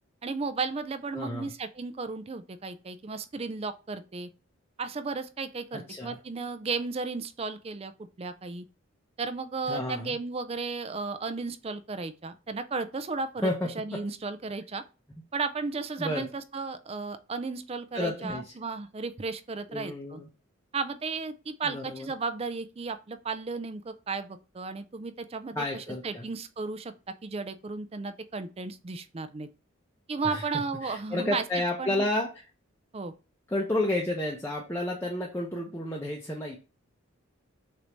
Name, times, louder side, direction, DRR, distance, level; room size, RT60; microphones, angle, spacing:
voice 1, 0.2-4.3 4.8-8.7 9.2-13.5 13.8-14.8 15.3-20.2 20.7-26.9 27.2-29.5 30.1-31.4 31.8-32.1 32.9-33.1, right 4 dB, 30° right, 0.4 m, -34 dB
voice 2, 1.1-1.5 5.7-6.2 9.7-10.2 13.4-13.7 16.0-16.3 17.9-18.5 19.7-20.3 21.6-22.1 25.5-26.2 30.2-30.4 30.8-32.5 33.5-36.6, left 1 dB, 10° left, 0.7 m, -31 dB
6.6 x 2.6 x 3.0 m
head